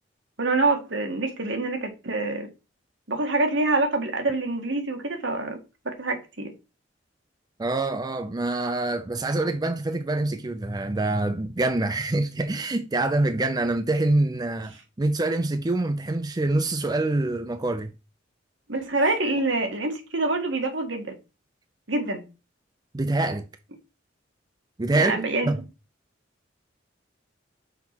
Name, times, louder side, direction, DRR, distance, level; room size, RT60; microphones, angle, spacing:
voice 1, 0.4-2.5 3.1-5.6 5.9-6.5 18.7-21.2 21.9-22.2 24.9-25.5, right 2 dB, 70° right, 1.7 m, -26 dB
voice 2, 7.6-17.9 22.9-23.5 24.8-25.6, right 2 dB, 20° right, 0.5 m, -25 dB
5.8 x 4.3 x 6.0 m
head